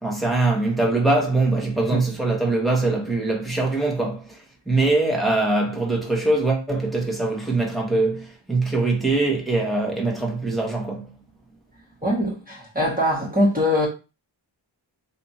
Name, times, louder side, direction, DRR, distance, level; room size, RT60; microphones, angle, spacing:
voice 1, 0.0-4.4 4.7-11.1, right 2 dB, ahead, 1.4 m, -22 dB
voice 2, 12.0-13.9, left 1 dB, 20° right, 1.6 m, -22 dB
3.3 x 2.7 x 4.1 m
wide cardioid pair, 80°, 45 cm